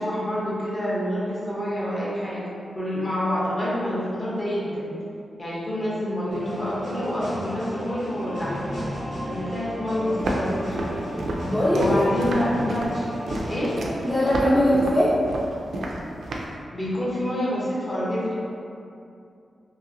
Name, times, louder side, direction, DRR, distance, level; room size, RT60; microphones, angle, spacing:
voice 1, 0.0-2.4 2.7-4.9 5.4-8.6 9.2-11.0 11.8-13.1 13.4-13.8 16.7-18.3, equal, 25° left, -8 dB, 0.8 m, -27 dB
sound 1, 6.3-14.3, equal, 80° left, 1.3 m, -33 dB
Walk footsteps, 10.2-16.6, right 1 dB, 75° right, 0.3 m, -31 dB
voice 2, 11.5-12.0 14.0-15.1, equal, 5° left, -10 dB, 0.4 m, -20 dB
2.9 x 2.8 x 2.6 m, 2.5 s
wide cardioid pair, 145°, 0 cm